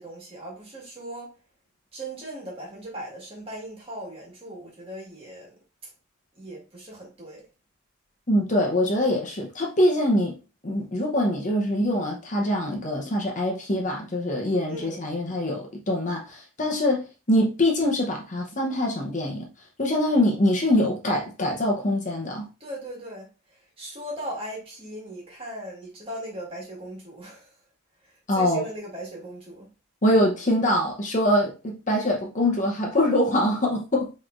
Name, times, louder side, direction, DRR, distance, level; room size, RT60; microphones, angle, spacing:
voice 1, 0.0-1.4 1.9-5.5 5.8-5.9 6.3-7.4 14.7-15.1 22.6-27.5 28.3-29.7, right 1 dB, 30° right, 1.8 m, -38 dB
voice 2, 8.3-10.4 10.6-19.5 19.8-22.5 28.3-28.6 30.0-34.1, left 1 dB, 40° left, 0.9 m, -24 dB
5.5 x 3.2 x 2.5 m
head